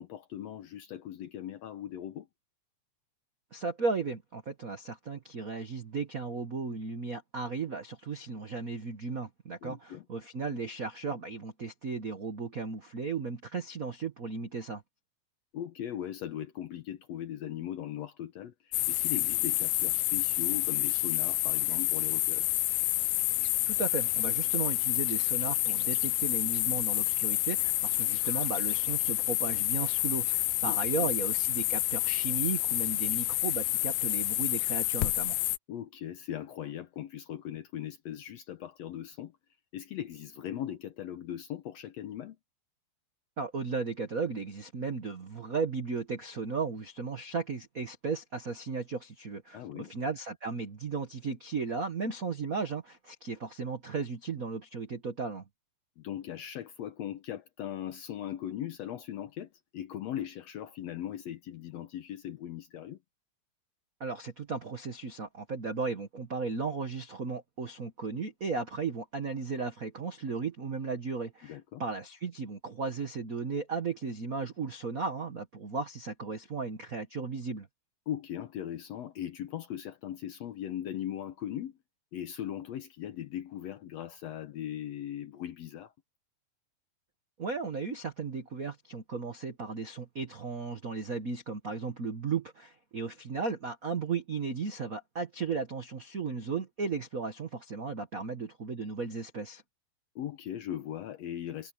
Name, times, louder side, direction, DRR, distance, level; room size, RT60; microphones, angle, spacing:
voice 1, 0.0-2.3 9.6-10.0 15.5-22.5 30.6-31.1 35.7-39.3 39.7-42.4 49.5-49.9 56.0-63.0 71.4-71.8 78.1-81.8 82.1-85.9 100.1-101.7, left 11 dB, 70° left, 1.7 m, -39 dB
voice 2, 3.5-14.8 23.7-35.4 43.4-55.4 64.0-77.7 87.4-99.6, right 4 dB, 65° right, 0.8 m, -35 dB
sound 1, 18.7-35.6, left 18 dB, 85° left, 2.4 m, -29 dB
omnidirectional pair, 3.9 m